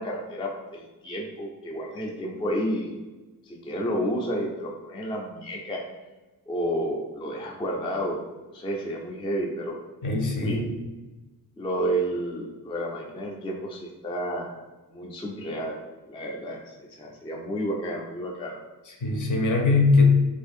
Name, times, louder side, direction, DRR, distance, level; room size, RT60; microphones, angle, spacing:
voice 1, 0.0-2.9 3.5-5.8 6.5-8.2 8.5-9.8 10.4-10.6 11.6-14.6 14.9-15.8 16.1-18.6, equal, 15° left, -2 dB, 0.3 m, -31 dB
voice 2, 10.0-10.7 18.9-20.0, left 3 dB, 55° left, 2 dB, 0.6 m, -22 dB
2.6 x 2.4 x 4.1 m, 1.2 s
wide cardioid pair, 170°, 38 cm